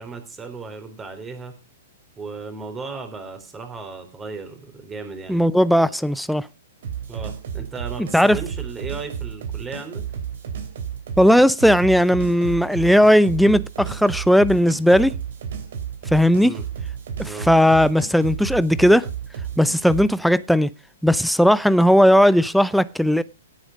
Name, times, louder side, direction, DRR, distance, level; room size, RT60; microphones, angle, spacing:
voice 1, 0.0-1.6 2.2-5.4 7.1-10.0 16.4-16.6 17.2-17.5, right 4 dB, 15° right, 3.7 m, -35 dB
voice 2, 5.3-6.5 8.1-8.4 11.2-15.1 16.1-16.5 17.2-19.1 19.6-20.7 21.0-23.2, equal, ahead, 0.6 m, -16 dB
sound 1, 6.8-20.1, right 8 dB, 60° right, 3.1 m, -32 dB
17.0 x 8.5 x 5.1 m
figure-of-eight pair, 110°, 0 cm